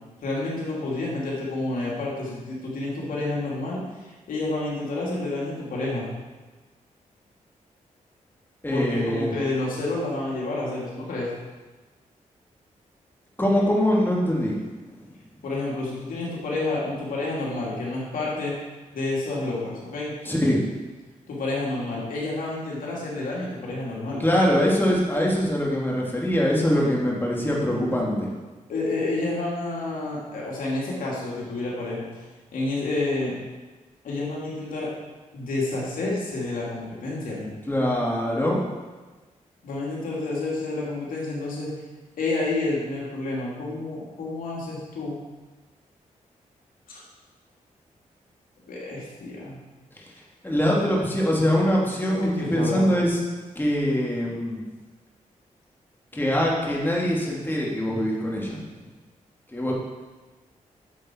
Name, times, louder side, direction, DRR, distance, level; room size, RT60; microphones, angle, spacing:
voice 1, 0.2-6.0 8.7-11.3 15.4-18.5 18.9-20.1 21.3-24.2 28.7-32.1 32.5-33.3 34.0-34.9 35.3-37.5 39.6-41.7 42.2-45.2 46.9-47.0 48.7-49.6 52.1-52.9, left 2 dB, 85° left, -5 dB, 2.5 m, -29 dB
voice 2, 8.6-9.3 13.4-14.7 20.2-20.6 24.2-28.3 37.7-38.6 50.4-53.2 53.6-54.6 56.1-58.6 59.5-59.7, equal, 15° left, -3 dB, 2.4 m, -23 dB
8.7 x 7.2 x 4.4 m, 1.2 s
cardioid pair, 65°, 14 cm